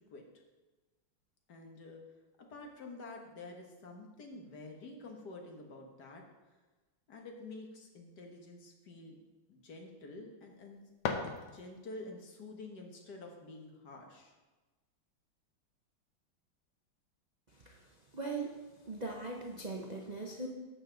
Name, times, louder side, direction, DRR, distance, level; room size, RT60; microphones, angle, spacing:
voice 1, 1.5-2.0 2.4-6.6 7.1-9.2 9.5-10.8 11.5-14.3, left 2 dB, 55° left, 2 dB, 1.9 m, -49 dB
sound 1, 10.5-12.0, left 5 dB, 80° left, 1.7 m, -39 dB
voice 2, 18.1-18.6 18.8-20.5, right 3 dB, 60° right, 0 dB, 0.4 m, -40 dB
11.5 x 7.0 x 3.9 m, 1.2 s
omnidirectional pair, 2.2 m